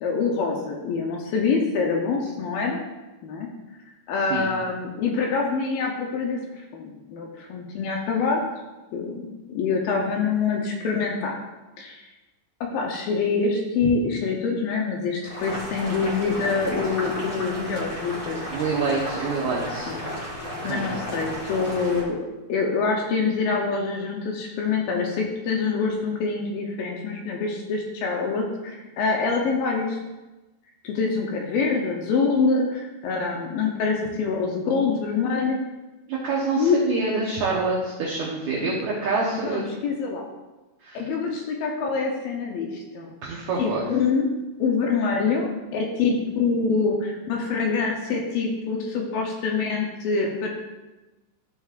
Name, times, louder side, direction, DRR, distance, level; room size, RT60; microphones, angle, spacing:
voice 1, 0.0-2.8 3.2-3.5 4.1-8.4 8.9-9.2 9.5-11.4 11.8-12.0 12.6-18.6 19.9-20.1 20.6-22.2 22.5-30.0 30.8-35.6 36.6-36.8 38.6-38.8 39.3-40.3 40.9-42.7 42.9-43.1 43.6-44.3 44.6-50.5, left 4 dB, 80° left, 0 dB, 2.2 m, -25 dB
Boiling, 15.2-22.0, equal, 25° left, 2.1 m, -33 dB
voice 2, 18.5-19.9 20.6-20.9 36.1-39.6 40.8-41.0 43.2-43.8, right 4 dB, 75° right, -3 dB, 1.8 m, -26 dB
13.5 x 5.9 x 2.5 m, 1.1 s
omnidirectional pair, 4.9 m